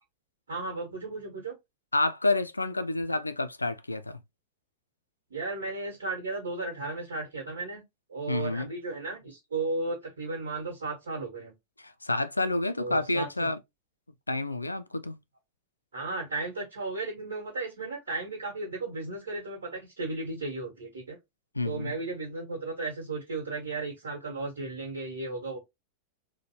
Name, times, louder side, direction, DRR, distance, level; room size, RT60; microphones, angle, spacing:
voice 1, 0.5-1.5 5.3-7.8 8.1-11.5 12.8-13.5 15.9-21.2 21.6-25.6, right 3 dB, 65° right, 1.2 m, -35 dB
voice 2, 1.9-4.2 8.3-8.7 11.8-13.6 14.3-15.2 21.6-21.9, left 2 dB, 85° left, 0.3 m, -29 dB
3.1 x 2.2 x 2.8 m
figure-of-eight pair, 90°, 0 cm